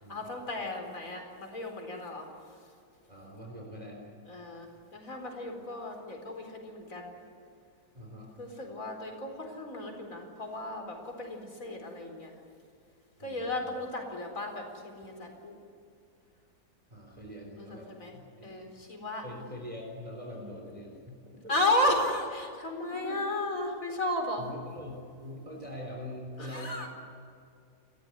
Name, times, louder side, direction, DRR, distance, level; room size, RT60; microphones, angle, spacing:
voice 1, 0.1-2.3 4.3-7.1 8.4-12.3 13.2-14.6 14.9-15.5 17.6-18.1 18.4-19.2 21.5-24.4 26.4-26.9, left 1 dB, 50° left, 3 dB, 4.7 m, -34 dB
voice 2, 3.1-4.0 7.9-8.3 13.2-13.7 16.9-18.5 19.2-21.5 23.0-23.2 24.4-24.9 25.2-26.9, equal, 20° right, -1 dB, 4.0 m, -43 dB
30.0 x 14.5 x 9.6 m, 2.4 s
omnidirectional pair, 1.8 m